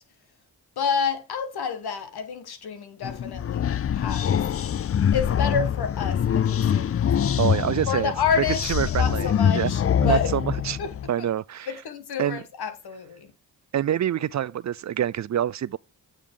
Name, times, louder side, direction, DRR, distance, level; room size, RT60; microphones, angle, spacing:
voice 1, 0.8-4.4 5.1-7.2 7.9-8.6 8.9-10.3 10.8-10.9 11.2-11.3 11.7-13.3, left 6 dB, 80° left, 1.5 m, -29 dB
sound 1, 3.0-11.1, left 8 dB, 40° left, 0.4 m, -24 dB
voice 2, 7.4-8.1 8.7-9.7 10.0-10.4 10.7-10.8 11.1-11.7 12.2-12.4 13.7-15.8, right 10 dB, 50° right, 0.4 m, -26 dB
8.6 x 5.0 x 3.9 m
cardioid pair, 50°, 38 cm